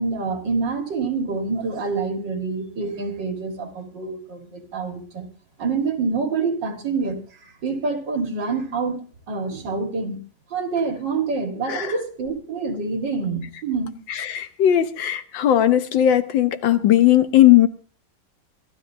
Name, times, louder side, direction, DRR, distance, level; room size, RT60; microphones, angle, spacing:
voice 1, 0.0-5.3 5.6-9.0 9.3-10.2 10.5-13.9, right 4 dB, 75° right, 4 dB, 2.6 m, -26 dB
voice 2, 14.3-17.7, left 12 dB, 90° left, 11 dB, 1.7 m, -17 dB
25.0 x 12.5 x 2.8 m, 0.41 s
omnidirectional pair, 2.0 m